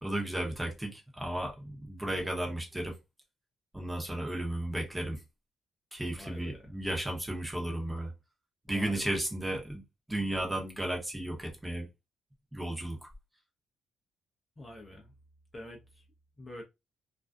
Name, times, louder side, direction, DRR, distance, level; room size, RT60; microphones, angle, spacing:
voice 1, 0.0-3.0 3.7-5.2 5.9-8.1 8.6-9.8 10.1-11.9 12.5-13.1, right 1 dB, 10° right, 0.9 m, -34 dB
voice 2, 6.2-6.6 8.7-9.1 14.6-15.1 15.5-16.0 16.4-16.6, left 1 dB, 20° left, 0.7 m, -46 dB
2.5 x 2.2 x 2.3 m
cardioid pair, 90°, 0 cm